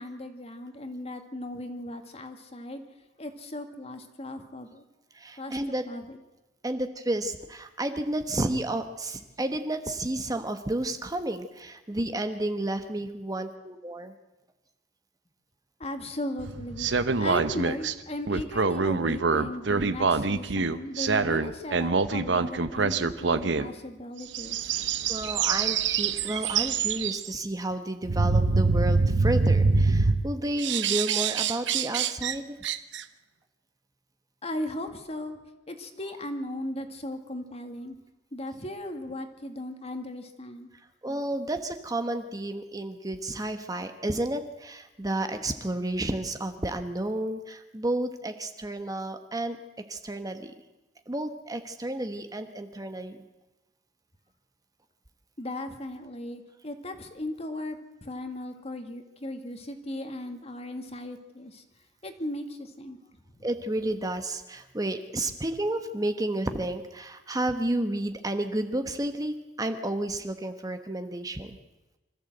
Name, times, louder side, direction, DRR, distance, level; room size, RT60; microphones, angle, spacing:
voice 1, 0.0-2.8 3.2-4.8 5.4-5.6 5.9-6.2 15.8-16.9 17.2-24.7 34.4-35.4 35.7-37.9 38.3-40.7 55.4-61.6 62.0-63.0 63.4-63.5, left 1 dB, 35° left, 7 dB, 2.0 m, -37 dB
voice 2, 5.1-5.8 6.6-14.1 25.1-32.6 41.0-49.6 49.9-50.5 51.1-53.2 63.4-71.6, right 1 dB, 20° right, 8 dB, 1.1 m, -31 dB
sound 1, 16.4-17.9 18.3-23.7 24.3-27.3 28.0-30.2 30.6-32.4 32.6-33.0, right 4 dB, 75° right, 1.0 m, -25 dB
25.0 x 14.0 x 7.9 m, 1.1 s
head